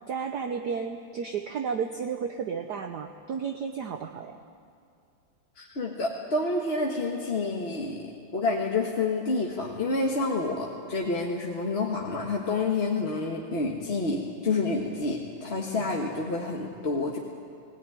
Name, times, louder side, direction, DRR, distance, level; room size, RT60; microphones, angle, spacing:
voice 1, 0.1-4.4, right 6 dB, 60° right, 5 dB, 1.2 m, -32 dB
voice 2, 5.6-8.0 8.3-17.2, left 3 dB, 30° left, -1 dB, 1.5 m, -28 dB
20.5 x 17.5 x 9.8 m, 2.3 s
omnidirectional pair, 2.4 m